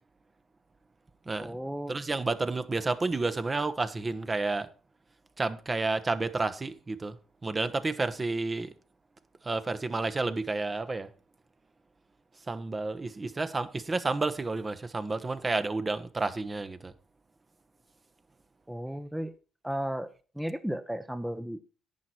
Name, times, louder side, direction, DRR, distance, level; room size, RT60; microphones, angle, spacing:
voice 1, 1.4-1.9 18.7-19.3 19.6-20.1 20.3-21.6, equal, 5° right, 0.8 m, -34 dB
voice 2, 1.9-4.7 5.4-7.2 7.4-8.7 9.4-11.1 12.5-16.9, right 3 dB, 25° right, 1.0 m, -30 dB
10.5 x 9.3 x 4.4 m
cardioid pair, 90°, 0 cm